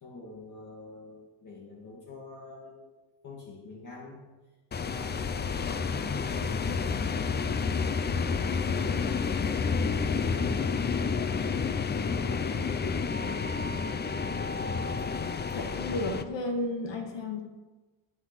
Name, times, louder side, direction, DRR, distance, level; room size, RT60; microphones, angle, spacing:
voice 1, 0.0-2.9 3.2-7.0 7.9-11.7 12.0-13.0, left 3 dB, 45° left, -5 dB, 2.3 m, -46 dB
sound 1, 4.7-16.2, left 5 dB, 25° left, 0.5 m, -30 dB
voice 2, 15.5-17.4, left 2 dB, 75° left, 3 dB, 1.9 m, -32 dB
12.0 x 9.4 x 6.1 m, 1.2 s
cardioid pair, 175°, 43 cm